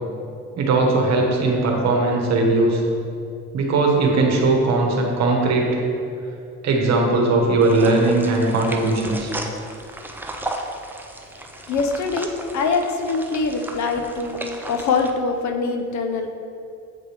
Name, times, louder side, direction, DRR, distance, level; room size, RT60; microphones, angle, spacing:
voice 1, 0.6-2.8 3.5-5.7 6.6-9.3, right 2 dB, 55° right, 0 dB, 1.1 m, -19 dB
sound 1, 7.6-15.1, right 1 dB, 5° right, 0.4 m, -35 dB
voice 2, 11.7-16.3, left 4 dB, 60° left, 5 dB, 0.6 m, -24 dB
7.8 x 4.7 x 3.3 m, 2.6 s
cardioid pair, 125°, 32 cm